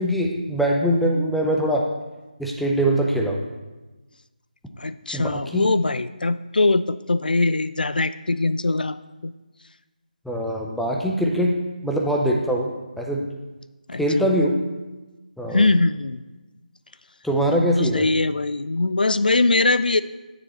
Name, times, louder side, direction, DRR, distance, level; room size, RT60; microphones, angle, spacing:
voice 1, 0.0-1.9 2.4-3.4 5.1-5.7 10.3-11.5 11.8-12.7 13.0-13.3 14.0-14.6 15.4-15.6 17.2-18.1, equal, ahead, -1 dB, 0.4 m, -22 dB
voice 2, 4.8-9.3 13.9-14.3 15.5-16.2 17.8-20.0, left 3 dB, 85° left, 14 dB, 0.4 m, -22 dB
9.4 x 6.8 x 4.1 m, 1.2 s
figure-of-eight pair, 165°, 5 cm